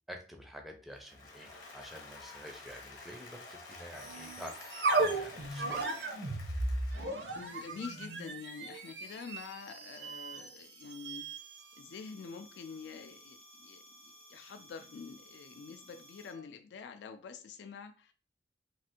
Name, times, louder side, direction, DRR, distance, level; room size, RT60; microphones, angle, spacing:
voice 1, 0.1-4.5 4.9-6.1, equal, ahead, 2 dB, 0.4 m, -49 dB
Applause, 0.9-8.1, left 3 dB, 45° left, 0.9 m, -51 dB
sound 1, 3.9-16.4, right 2 dB, 80° right, 0.7 m, -38 dB
voice 2, 7.3-11.3 11.8-18.1, left 5 dB, 75° left, 7 dB, 0.3 m, -47 dB
3.2 x 2.4 x 2.8 m, 0.37 s
head